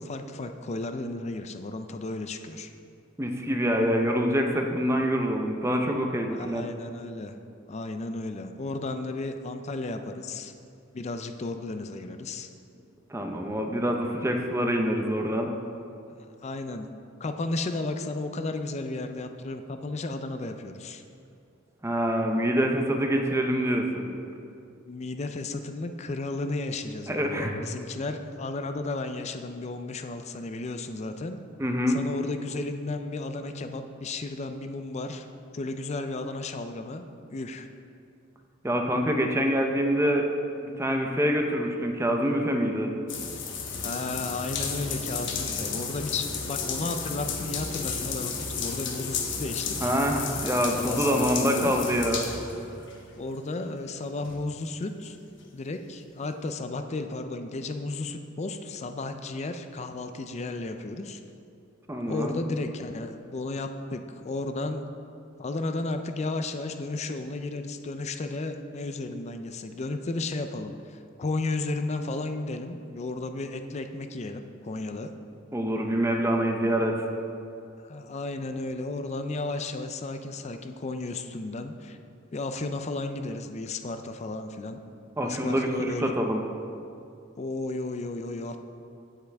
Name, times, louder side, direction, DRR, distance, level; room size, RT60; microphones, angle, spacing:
voice 1, 0.0-2.7 6.3-7.3 7.7-10.5 10.9-12.5 16.4-16.9 17.2-21.0 24.9-31.4 31.9-35.3 35.5-37.7 43.8-49.9 50.7-51.7 53.2-55.2 55.5-61.2 62.1-64.8 65.4-75.1 77.8-82.0 82.3-84.8 85.2-86.2 87.4-88.6, left 2 dB, 35° left, 7 dB, 0.4 m, -33 dB
voice 2, 3.2-6.7 13.1-15.5 21.8-24.1 27.1-27.5 31.6-32.0 38.6-40.3 40.6-42.9 49.8-52.3 61.9-62.3 75.5-77.1 85.2-86.4, equal, 15° right, 3 dB, 0.7 m, -26 dB
sound 1, 43.1-53.0 53.5-53.6 54.2-54.4, left 5 dB, 65° left, 1.0 m, -33 dB
15.5 x 5.7 x 3.5 m, 2.5 s
head